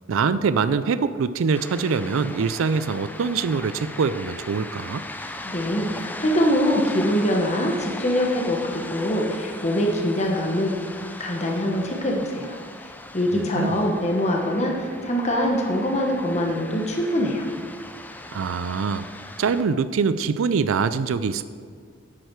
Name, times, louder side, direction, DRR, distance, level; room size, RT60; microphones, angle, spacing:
voice 1, 0.1-5.0 13.3-13.9 18.3-19.1 19.4-21.4, right 5 dB, 80° right, 13 dB, 0.4 m, -24 dB
sound 1, 1.5-19.6, left 2 dB, 10° left, 0.5 m, -39 dB
voice 2, 5.4-10.7 11.2-12.6 13.1-17.5, equal, 30° left, 0 dB, 1.0 m, -23 dB
11.0 x 8.2 x 4.6 m, 2.2 s
head